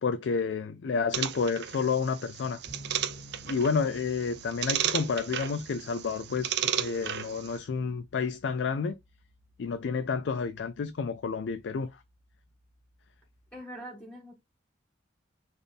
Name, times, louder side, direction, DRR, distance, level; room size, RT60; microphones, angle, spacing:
voice 1, 0.0-2.6 3.5-9.0 9.6-11.9, left 5 dB, 65° left, 0.4 m, -30 dB
sound 1, 1.1-7.6, right 9 dB, 55° right, 0.4 m, -34 dB
sound 2, 2.7-13.6, left 1 dB, 20° right, 1.3 m, -55 dB
voice 2, 13.5-14.3, equal, 5° left, 1.5 m, -43 dB
4.1 x 2.4 x 3.4 m
head